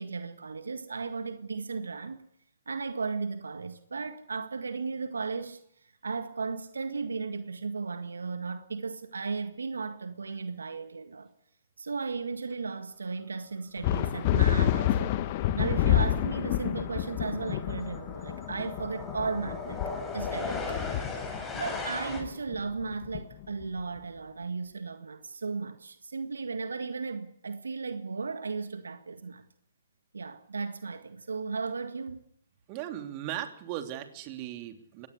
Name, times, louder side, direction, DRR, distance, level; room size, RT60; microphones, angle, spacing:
voice 1, 0.0-2.3 2.6-5.6 6.0-11.3 11.8-15.2 15.5-19.8 20.1-21.1 21.5-29.5 30.1-32.2, right 4 dB, 75° right, 1.8 m, -35 dB
sound 1, 13.8-23.8, left 12 dB, 35° left, 1.4 m, -29 dB
sound 2, 15.4-15.6 15.9-22.2, left 3 dB, 10° left, 6.4 m, -38 dB
voice 2, 32.7-35.1, right 12 dB, 30° right, 3.2 m, -38 dB
23.5 x 19.0 x 8.3 m
figure-of-eight pair, 130°, 0 cm